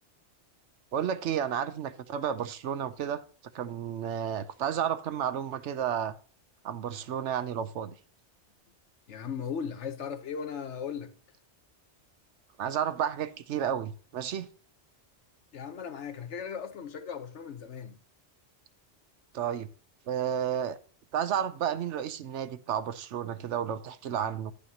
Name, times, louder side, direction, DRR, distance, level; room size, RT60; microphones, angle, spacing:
voice 1, 0.9-3.2 3.5-6.1 6.6-7.9 12.6-14.5 19.3-19.7 20.1-20.8 21.1-24.5, right 9 dB, 80° right, 1.0 m, -31 dB
voice 2, 9.1-11.1 15.5-18.0, left 7 dB, 80° left, 1.3 m, -37 dB
11.0 x 8.4 x 2.8 m
omnidirectional pair, 1.2 m